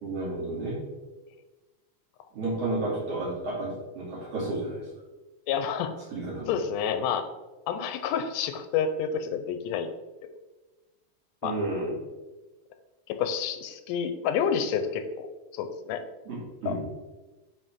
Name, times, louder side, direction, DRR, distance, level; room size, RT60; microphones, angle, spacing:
voice 1, 0.0-0.8 2.3-4.8 6.1-6.5 11.4-11.9 16.3-16.8, right 2 dB, 55° right, -7 dB, 3.7 m, -31 dB
voice 2, 5.5-5.9 6.5-7.3 7.7-9.9 11.4-11.6 13.1-15.3 15.5-16.0 16.7-16.8, left 7 dB, 90° left, 9 dB, 2.2 m, -29 dB
8.1 x 4.9 x 3.7 m, 1.2 s
omnidirectional pair, 3.5 m